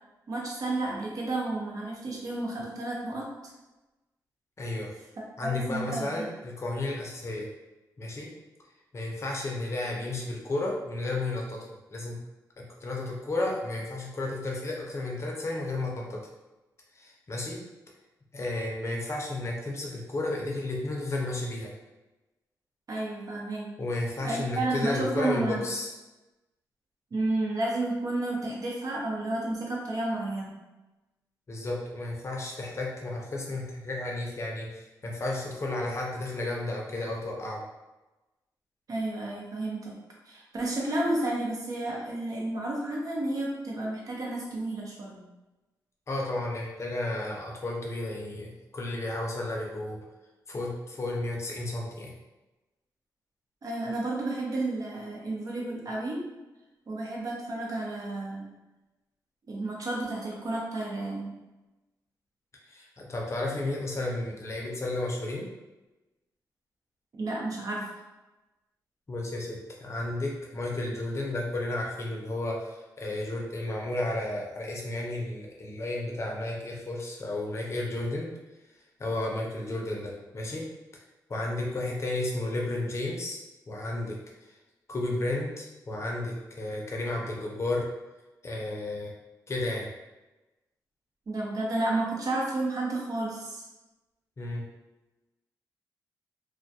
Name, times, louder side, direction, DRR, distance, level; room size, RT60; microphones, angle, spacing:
voice 1, 0.3-3.3 5.4-6.3 22.9-23.7 24.2-25.7 27.1-30.6 38.9-39.9 40.3-45.3 53.6-56.2 56.9-58.5 59.5-61.3 67.2-67.9 91.3-93.7, right 2 dB, 55° right, -2 dB, 0.7 m, -31 dB
voice 2, 4.6-4.9 5.4-7.5 8.0-8.3 8.9-12.2 12.6-16.2 16.9-17.6 18.3-21.7 23.8-25.9 31.5-37.6 46.1-50.0 50.5-52.1 62.7-65.5 69.1-78.3 79.0-80.7 81.3-83.4 83.7-84.5 84.9-87.9 88.4-89.1 89.5-89.9 94.4-94.6, left 2 dB, 40° left, -1 dB, 0.6 m, -32 dB
2.2 x 2.2 x 2.7 m, 1.1 s
cardioid pair, 70°, 7 cm